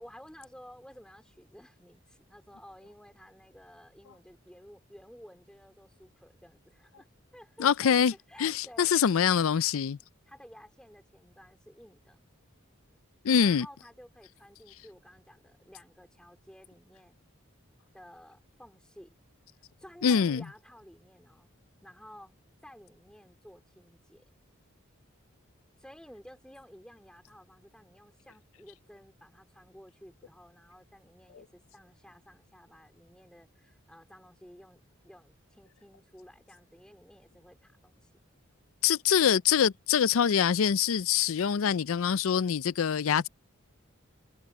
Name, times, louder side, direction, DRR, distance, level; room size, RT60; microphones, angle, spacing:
voice 1, 0.0-7.1 7.3-8.9 10.3-12.2 13.4-17.2 17.9-19.1 19.8-21.5 21.8-22.3 22.6-24.2 25.8-38.1, equal, 5° left, 2.7 m, -53 dB
voice 2, 7.6-8.1 8.4-10.0 13.2-13.7 20.0-20.4 38.8-43.3, left 7 dB, 80° left, 0.4 m, -24 dB
head